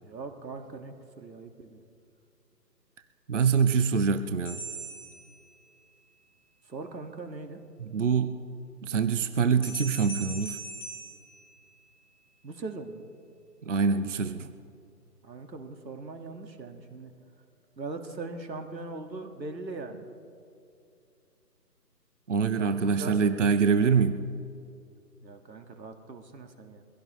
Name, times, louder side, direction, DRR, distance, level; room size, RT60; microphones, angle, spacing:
voice 1, 0.0-1.8 6.7-7.6 12.4-13.0 15.2-17.1 17.8-20.1 22.6-23.3 25.2-26.8, right 3 dB, 85° right, 5 dB, 1.9 m, -40 dB
voice 2, 3.3-4.6 7.8-8.4 8.8-10.6 13.7-14.5 22.3-24.2, right 5 dB, 50° right, 10 dB, 0.6 m, -25 dB
sound 1, 4.4-6.0 9.6-12.1, right 2 dB, 5° left, 1.5 m, -41 dB
24.0 x 16.0 x 3.1 m, 2.5 s
figure-of-eight pair, 165°, 50 cm